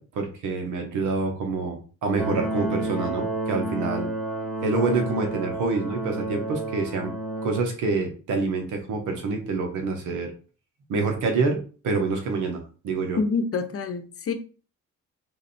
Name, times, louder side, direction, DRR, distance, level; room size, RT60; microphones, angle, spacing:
voice 1, 0.0-4.1 4.6-7.1 7.4-10.3 10.9-13.2, right 3 dB, 85° right, 1.4 m, -27 dB
sound 1, 2.2-7.6, right 1 dB, ahead, 1.2 m, -30 dB
voice 2, 13.2-14.3, left 4 dB, 50° left, 0.9 m, -26 dB
3.8 x 3.3 x 4.2 m
cardioid pair, 90°, 30 cm